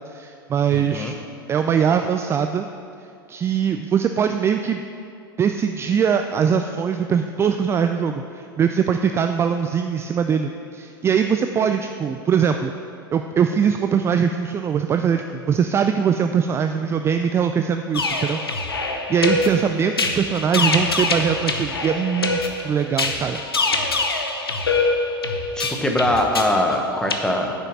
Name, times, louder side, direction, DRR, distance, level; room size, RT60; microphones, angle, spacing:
voice 1, 0.1-1.2 1.5-2.7 3.3-4.8 5.4-12.7 13.1-18.4 19.1-22.4 22.6-23.7, right 7 dB, 20° right, 7 dB, 0.3 m, -21 dB
voice 2, 0.7-1.1 25.5-27.5, left 1 dB, 5° left, 2 dB, 1.0 m, -22 dB
sound 1, 17.9-27.2, left 3 dB, 85° left, 0.8 m, -24 dB
7.0 x 5.7 x 7.4 m, 2.5 s
figure-of-eight pair, 85°, 12 cm